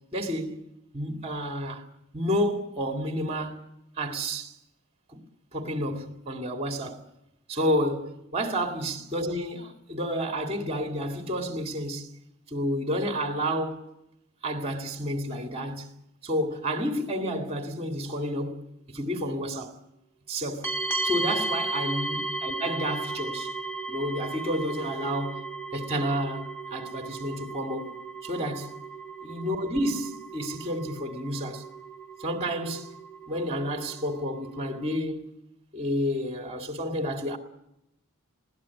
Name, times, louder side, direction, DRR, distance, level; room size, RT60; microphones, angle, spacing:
voice 1, 0.1-0.6 0.9-1.8 2.1-3.6 4.0-4.5 5.1-5.2 5.5-7.0 7.5-12.1 12.5-13.9 14.4-15.9 16.2-19.7 20.3-20.7 21.0-23.5 23.9-25.4 25.7-28.0 28.2-28.8 29.2-31.6 32.2-32.9 33.3-35.3 35.7-37.4, equal, 30° right, 2.2 m, -30 dB
sound 1, 20.6-35.0, right 2 dB, 10° left, 2.1 m, -35 dB
21.0 x 17.0 x 8.4 m
head